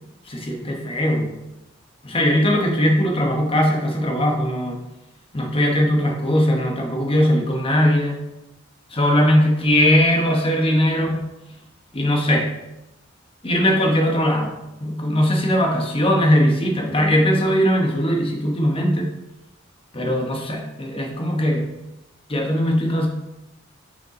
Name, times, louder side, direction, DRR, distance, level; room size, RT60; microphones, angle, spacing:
voice 1, 0.3-1.4 2.0-4.8 5.3-8.2 8.9-11.2 11.9-12.5 13.4-14.5 14.8-19.1 19.9-21.7 22.3-23.1, equal, 25° left, 1 dB, 1.1 m, -19 dB
6.2 x 5.4 x 3.7 m, 0.98 s
head